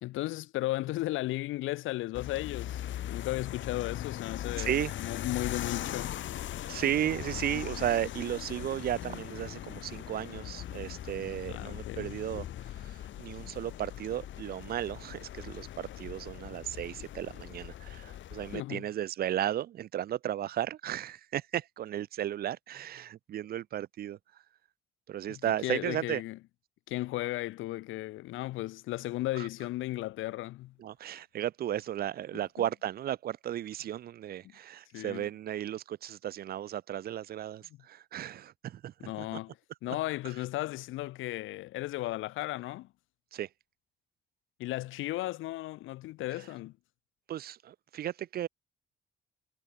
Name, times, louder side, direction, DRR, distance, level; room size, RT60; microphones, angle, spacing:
voice 1, 0.0-6.2 11.5-12.2 18.5-18.9 25.3-26.4 26.9-30.7 34.4-34.5 34.9-35.3 39.0-39.5 39.8-42.9 44.6-46.7, left 17 dB, 85° left, 0.6 m, -35 dB
sound 1, 2.1-18.6, left 12 dB, 70° left, 1.4 m, -40 dB
voice 2, 4.6-4.9 6.7-12.5 12.8-24.2 25.1-26.2 29.4-29.5 30.8-39.4 39.9-40.0 43.3-43.5 47.3-48.5, right 11 dB, 50° right, 0.4 m, -35 dB
cardioid pair, 90°, 20 cm